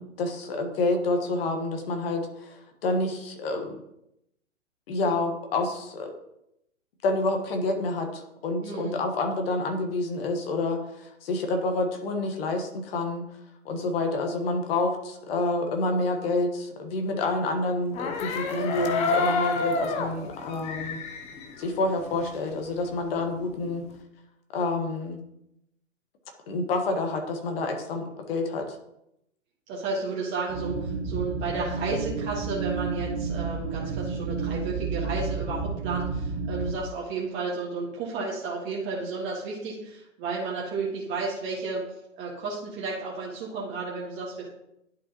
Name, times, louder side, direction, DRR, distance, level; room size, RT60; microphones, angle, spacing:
voice 1, 0.0-3.8 4.9-6.1 7.0-13.2 13.6-21.0 21.6-23.8 24.5-25.2 26.5-28.8, left 2 dB, 50° left, 4 dB, 1.5 m, -28 dB
voice 2, 8.6-8.9 18.5-18.8 29.7-41.8 42.2-44.5, right 4 dB, 30° right, -4 dB, 1.6 m, -32 dB
sound 1, 17.8-22.5 22.9-24.0, left 4 dB, 15° left, 0.6 m, -30 dB
sound 2, 30.5-36.7, right 4 dB, 50° right, 1.4 m, -31 dB
11.0 x 4.7 x 2.9 m, 0.81 s
figure-of-eight pair, 120°, 39 cm